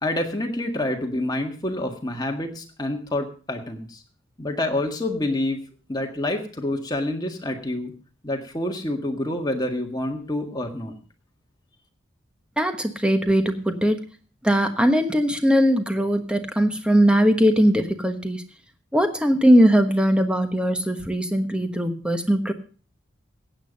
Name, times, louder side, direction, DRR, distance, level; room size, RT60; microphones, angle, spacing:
voice 1, 0.0-4.0 4.4-5.6 5.9-7.9 8.2-10.9, left 1 dB, 20° left, 3 dB, 1.8 m, -27 dB
voice 2, 12.6-14.0 14.4-18.4 18.9-22.5, equal, 5° right, 7 dB, 1.2 m, -20 dB
15.5 x 9.1 x 5.3 m, 0.38 s
head